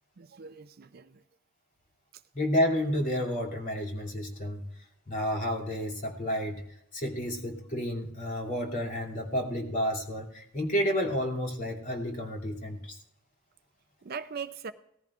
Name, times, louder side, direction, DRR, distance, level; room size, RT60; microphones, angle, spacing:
voice 1, 0.2-1.2 14.0-14.7, right 6 dB, 45° right, 0.5 m, -40 dB
voice 2, 2.3-6.6 6.9-13.0, equal, 40° left, 2.6 m, -31 dB
18.0 x 14.5 x 2.4 m
head